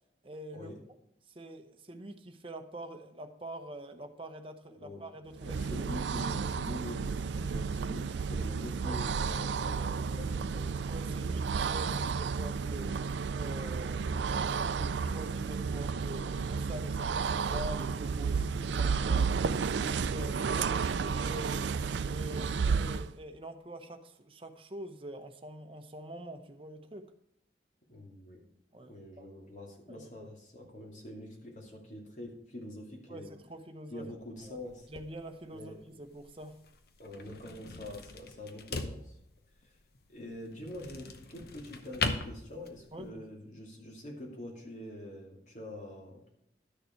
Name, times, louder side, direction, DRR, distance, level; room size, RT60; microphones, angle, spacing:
voice 1, 0.2-0.7 1.3-5.9 8.9-9.0 10.9-13.0 13.3-19.3 19.9-27.1 28.7-29.3 29.9-30.3 33.1-34.1 34.4-34.6 34.9-36.6 42.9-43.2, right 1 dB, 30° right, 0.9 m, -45 dB
voice 2, 4.7-5.1 5.4-10.7 27.9-28.4 28.9-33.3 33.9-34.9 35.5-35.7 37.0-39.1 40.1-46.3, left 1 dB, 45° left, 2.5 m, -45 dB
sound 1, 5.3-23.1, right 5 dB, 85° right, 0.4 m, -32 dB
sound 2, 34.4-43.1, left 3 dB, 60° left, 0.9 m, -41 dB
11.5 x 6.7 x 4.6 m
head